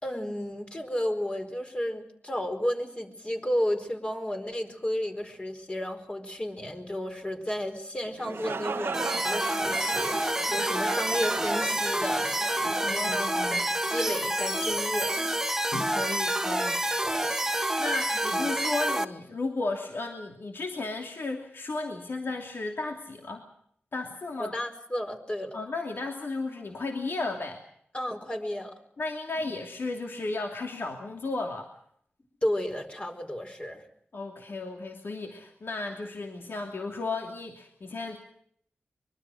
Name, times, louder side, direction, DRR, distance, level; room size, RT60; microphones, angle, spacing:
voice 1, 0.0-12.3 12.9-13.2 13.5-15.3 17.0-17.7 18.3-18.4 24.4-25.6 27.9-28.8 32.4-33.8, left 1 dB, 30° left, 4 dB, 4.6 m, -33 dB
sound 1, 8.0-13.8, right 5 dB, 80° right, 1.0 m, -37 dB
sound 2, 8.9-19.0, right 1 dB, 10° right, 1.4 m, -28 dB
voice 2, 12.8-13.6 15.7-16.8 17.8-23.5 23.9-24.5 25.5-27.6 29.0-31.7 34.1-38.2, left 3 dB, 70° left, 2 dB, 2.8 m, -34 dB
24.5 x 23.0 x 6.4 m, 0.66 s
wide cardioid pair, 75°, 4 cm